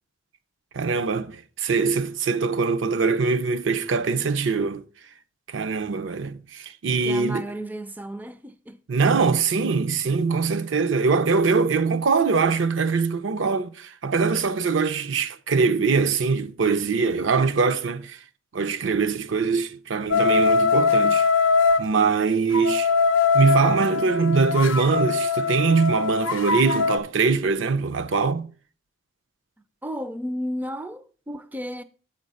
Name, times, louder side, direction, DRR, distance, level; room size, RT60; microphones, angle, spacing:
voice 1, 0.7-4.8 5.5-7.5 8.9-18.2 18.5-21.3 21.8-22.9 23.3-28.5, right 4 dB, 70° right, 0.5 m, -22 dB
voice 2, 7.0-8.8 10.1-10.2 29.8-31.8, equal, 10° right, 0.3 m, -33 dB
sound 1, 20.1-21.9 22.5-27.0, left 4 dB, 80° left, 0.6 m, -21 dB
7.7 x 5.3 x 5.3 m
head